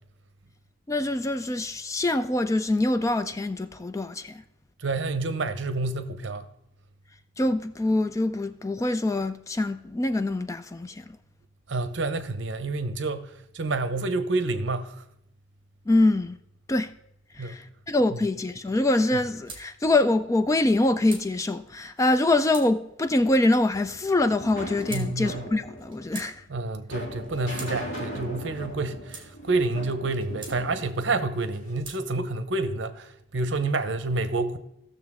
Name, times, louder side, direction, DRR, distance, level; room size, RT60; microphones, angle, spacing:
voice 1, 0.9-4.4 7.4-11.0 15.9-16.4 16.7-16.9 17.3-26.4, left 2 dB, 15° left, 0.3 m, -24 dB
voice 2, 4.8-6.5 11.7-15.0 17.4-17.6 18.1-18.2 24.9-25.5 26.5-34.6, right 3 dB, 65° right, 0.8 m, -28 dB
sound 1, 19.4-19.6 20.5-21.3 22.1-22.7 23.5-24.0 24.8-25.1 25.8-26.3 27.2-27.7 28.6-29.3 30.0-30.6 31.4-32.0, right 4 dB, 25° right, 1.7 m, -43 dB
sound 2, 23.7-31.8, equal, 85° left, 3.0 m, -39 dB
16.0 x 6.7 x 3.6 m
head